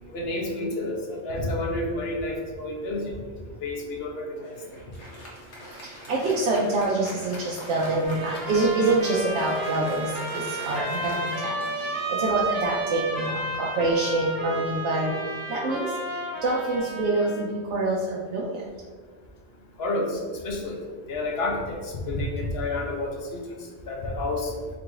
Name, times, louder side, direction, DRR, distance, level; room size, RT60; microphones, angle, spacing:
voice 1, 0.1-3.1 3.6-4.5 19.8-20.2 20.4-20.7 21.1-23.4 23.9-24.5, left 2 dB, 70° left, 1 dB, 0.9 m, -29 dB
Applause, 4.4-14.2, equal, 85° left, 1.4 m, -43 dB
voice 2, 5.6-15.1 15.5-18.6, right 2 dB, 85° right, -4 dB, 0.9 m, -26 dB
Trumpet, 7.8-17.5, right 1 dB, 65° right, 1.2 m, -32 dB
3.8 x 2.5 x 4.5 m, 1.5 s
omnidirectional pair, 1.1 m